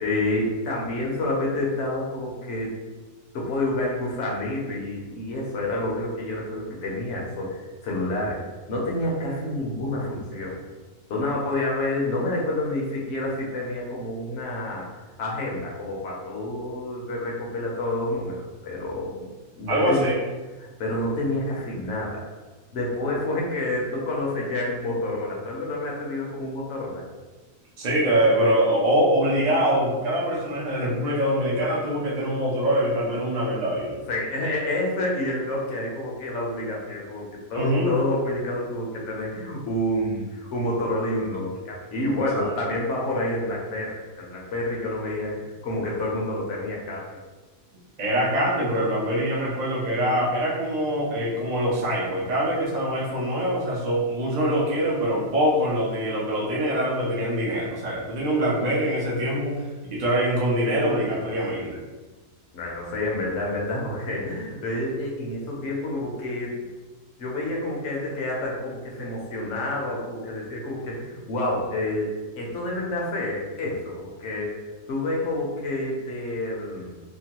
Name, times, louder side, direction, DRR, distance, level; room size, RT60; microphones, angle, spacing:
voice 1, 0.0-2.7 3.3-8.4 8.7-10.6 11.1-14.9 15.2-19.3 19.6-20.1 20.6-22.2 22.7-27.0 34.1-47.2 62.5-66.6 67.2-74.6 74.9-76.9, left 1 dB, 60° left, -3 dB, 0.8 m, -28 dB
voice 2, 19.7-20.2 27.8-34.0 37.5-37.9 42.3-42.5 48.0-61.8, equal, 70° right, -5 dB, 0.4 m, -24 dB
3.0 x 2.2 x 2.8 m, 1.2 s
omnidirectional pair, 1.7 m